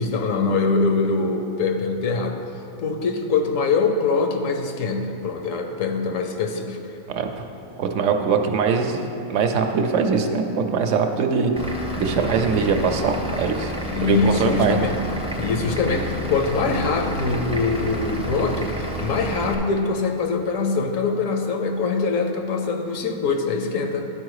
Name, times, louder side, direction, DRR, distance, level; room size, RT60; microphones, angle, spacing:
voice 1, 0.0-2.4 2.8-6.8 13.9-15.0 15.3-24.1, left 4 dB, 75° left, 5 dB, 1.1 m, -23 dB
voice 2, 7.8-11.5 12.0-13.7 14.0-14.9, right 5 dB, 70° right, 5 dB, 0.9 m, -22 dB
Vehicle / Engine, 11.6-19.6, right 1 dB, 10° right, 0.4 m, -30 dB
11.0 x 4.6 x 4.7 m, 3.0 s
omnidirectional pair, 1.4 m